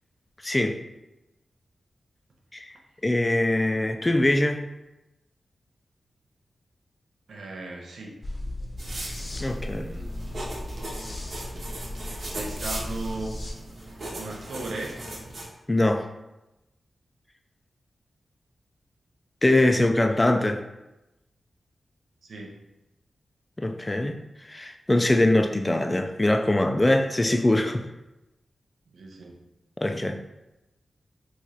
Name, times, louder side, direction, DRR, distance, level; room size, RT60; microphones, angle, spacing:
voice 1, 0.4-0.8 2.5-2.8 3.0-4.6 9.4-9.9 15.7-16.1 19.4-20.6 23.6-24.2 24.5-27.8 29.8-30.2, left 1 dB, 20° left, 5 dB, 0.3 m, -22 dB
voice 2, 7.3-8.2 9.7-10.3 12.2-13.4 14.2-15.0 22.2-22.6 28.9-29.4, right 2 dB, 85° right, 0 dB, 0.5 m, -37 dB
sound 1, 8.2-13.5, left 1 dB, 40° left, 0.7 m, -36 dB
sound 2, 8.8-15.4, right 1 dB, 65° right, 0.9 m, -38 dB
3.0 x 2.4 x 4.0 m, 0.97 s
cardioid pair, 60°, 0 cm